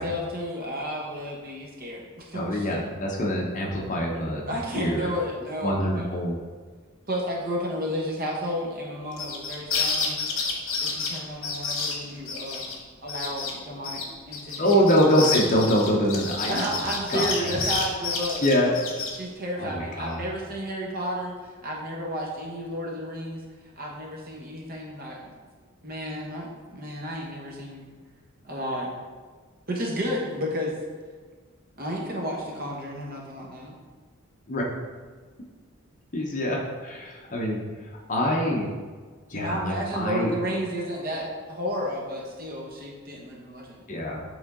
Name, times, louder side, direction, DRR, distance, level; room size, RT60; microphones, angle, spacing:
voice 1, 0.0-2.7 4.5-6.1 7.1-10.2 10.8-12.7 13.0-14.8 16.5-18.4 19.2-23.4 23.8-25.3 25.8-27.9 28.4-28.9 29.7-30.8 31.8-33.7 39.3-43.8, equal, 45° right, -1 dB, 1.1 m, -32 dB
voice 2, 2.3-4.4 4.7-5.1 5.6-6.4 14.6-17.6 18.4-18.8 19.6-20.2 34.5-34.6 36.1-37.6 38.1-38.7 39.3-40.3 43.9-44.2, equal, 35° left, -1 dB, 1.0 m, -24 dB
sound 1, 9.1-12.7 13.1-13.5 13.8-19.2, left 4 dB, 70° left, 1.2 m, -29 dB
8.2 x 3.8 x 3.7 m, 1.5 s
head